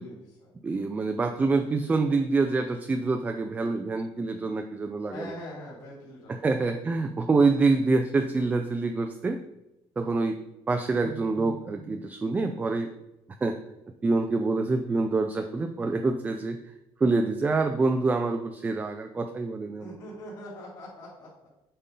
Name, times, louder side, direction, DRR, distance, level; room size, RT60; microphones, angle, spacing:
voice 1, 0.0-0.5 1.4-1.7 5.1-6.8 19.8-21.3, left 1 dB, 50° left, -11 dB, 2.8 m, -43 dB
voice 2, 0.6-5.3 6.4-9.4 10.0-10.4 10.7-12.9 13.4-13.6 14.0-16.6 17.0-20.0, right 3 dB, 15° right, 6 dB, 0.3 m, -26 dB
8.1 x 5.3 x 3.8 m, 0.93 s
cardioid pair, 160°, 10 cm